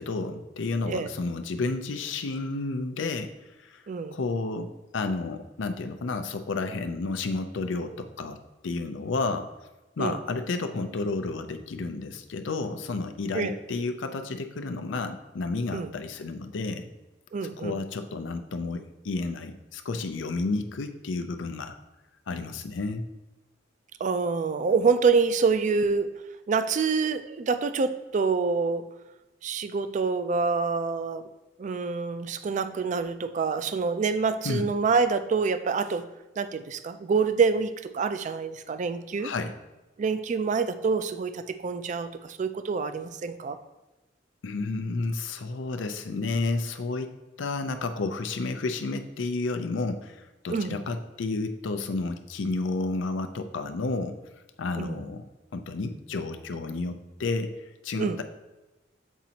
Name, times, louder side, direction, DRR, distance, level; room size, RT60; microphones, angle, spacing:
voice 1, 0.0-3.3 3.6-3.8 4.1-9.5 10.0-16.9 17.4-21.8 22.3-23.1 34.4-34.7 39.2-39.5 44.4-47.1 47.4-54.2 54.6-58.2, left 3 dB, 85° left, 7 dB, 0.5 m, -31 dB
voice 2, 3.9-4.2 10.0-10.2 13.3-13.6 15.7-15.9 17.3-17.8 24.0-26.1 26.5-28.8 29.4-31.3 31.6-36.1 36.4-39.3 40.0-43.6 50.5-50.8 54.8-55.0 58.0-58.2, right 5 dB, 40° right, 11 dB, 0.3 m, -26 dB
7.2 x 5.1 x 2.8 m, 1.1 s
head